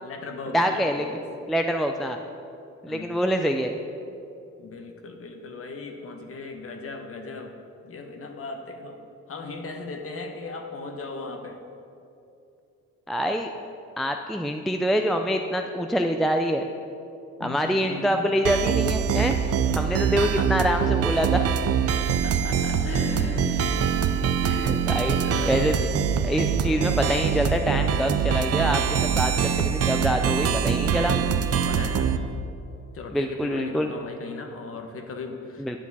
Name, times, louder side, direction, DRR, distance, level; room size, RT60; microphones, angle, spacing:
voice 1, 0.0-1.2 2.9-3.2 4.6-7.6 7.8-9.0 9.3-11.6 17.4-18.3 19.7-20.8 22.2-24.1 25.2-25.7 29.3-29.7 31.6-32.1 32.9-35.8, left 3 dB, 50° left, 4 dB, 1.1 m, -37 dB
voice 2, 0.5-1.1 1.5-2.2 2.8-3.8 13.1-13.5 14.0-16.6 17.4-19.4 19.8-21.5 24.4-25.2 25.5-25.7 26.2-31.1 33.1-33.9 35.6-35.8, equal, ahead, 4 dB, 0.4 m, -25 dB
sound 1, 18.4-32.2, right 7 dB, 55° right, 0.5 m, -24 dB
10.5 x 7.2 x 4.1 m, 2.7 s
cardioid pair, 90°, 30 cm